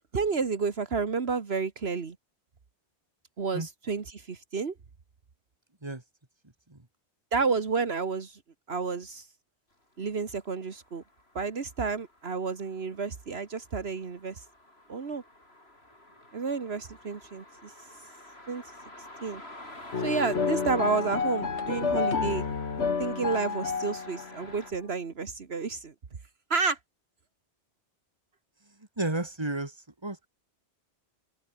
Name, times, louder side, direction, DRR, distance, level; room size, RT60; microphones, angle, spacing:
voice 1, 0.1-2.2 3.4-4.7 7.3-8.4 8.7-9.2 10.0-11.0 11.4-14.4 14.9-15.2 16.3-17.7 18.5-18.6 19.2-19.4 20.0-22.5 23.0-25.9 26.5-26.8, right 5 dB, 70° right, 1.8 m, -30 dB
sound 1, 10.0-24.7, left 1 dB, 70° left, 7.4 m, -50 dB
sound 2, 19.9-24.6, left 5 dB, 90° left, 2.0 m, -30 dB
voice 2, 28.8-30.3, right 2 dB, 25° right, 2.6 m, -33 dB
open air
omnidirectional pair, 1.1 m